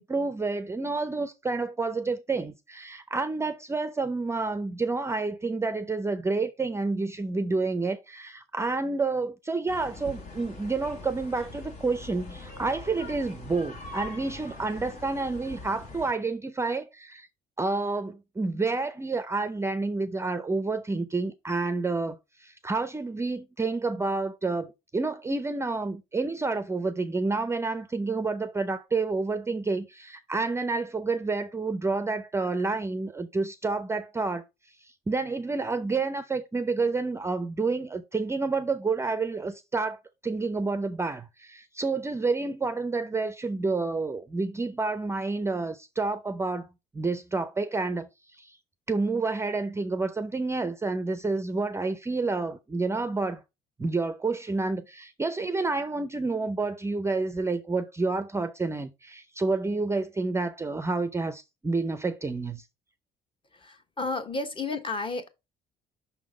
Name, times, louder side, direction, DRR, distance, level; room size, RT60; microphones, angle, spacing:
voice 1, 0.0-17.3 17.6-34.4 34.8-46.7 46.9-48.6 48.9-53.4 53.8-62.6, right 3 dB, 15° right, 0.5 m, -29 dB
sound 1, 9.7-16.1, left 3 dB, 70° left, 2.1 m, -43 dB
voice 2, 63.5-65.3, left 3 dB, 30° left, 1.2 m, -32 dB
5.9 x 3.8 x 4.9 m
cardioid pair, 110°, 17 cm